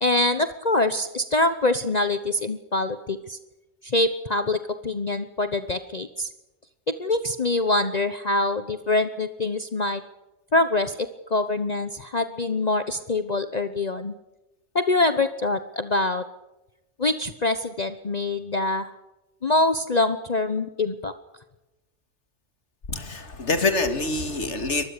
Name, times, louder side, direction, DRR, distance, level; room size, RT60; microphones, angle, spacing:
voice 1, 0.0-3.4 3.8-6.3 6.9-10.0 10.5-14.1 14.7-16.2 17.0-18.9 19.4-21.1, left 2 dB, 35° left, 10 dB, 1.1 m, -24 dB
voice 2, 22.9-24.8, left 3 dB, 75° left, 8 dB, 2.5 m, -25 dB
24.0 x 20.0 x 6.8 m, 0.99 s
omnidirectional pair, 1.2 m